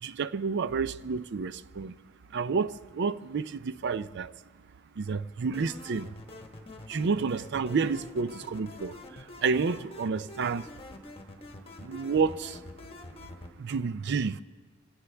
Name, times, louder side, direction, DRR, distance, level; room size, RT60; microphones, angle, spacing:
voice 1, 0.0-1.9 2.3-4.3 5.0-6.1 6.9-10.7 11.8-12.6 13.6-14.4, right 5 dB, 55° right, 0.5 m, -30 dB
sound 1, 5.5-13.5, left 2 dB, 30° left, 1.2 m, -46 dB
25.5 x 16.5 x 3.3 m
head